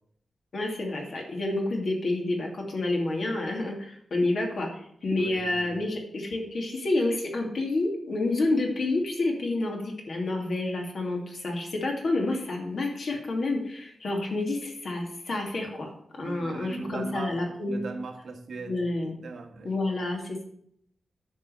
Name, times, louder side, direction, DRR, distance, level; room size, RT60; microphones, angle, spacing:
voice 1, 0.5-4.7 5.0-15.9 16.2-17.8 18.7-19.1 19.6-20.4, left 2 dB, 55° left, 1 dB, 2.6 m, -29 dB
voice 2, 5.1-5.8 16.2-17.4 17.7-18.8 19.2-19.7, right 4 dB, 75° right, 4 dB, 1.6 m, -38 dB
10.0 x 5.4 x 7.7 m, 0.68 s
wide cardioid pair, 155°, 0 cm